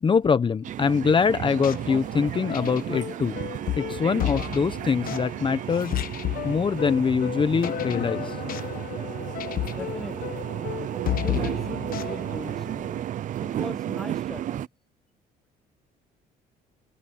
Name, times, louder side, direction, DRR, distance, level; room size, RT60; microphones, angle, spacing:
voice 1, 0.0-3.4 3.8-6.0 6.4-8.4, left 6 dB, 30° left, 1.0 m, -24 dB
sound 1, 0.6-14.7, right 12 dB, 50° right, 0.5 m, -33 dB
sound 2, 1.5-13.0, left 11 dB, 55° left, 1.3 m, -33 dB
voice 2, 9.7-10.5 11.2-12.9 13.4-14.7, left 1 dB, ahead, 1.3 m, -39 dB
cardioid pair, 110°, 17 cm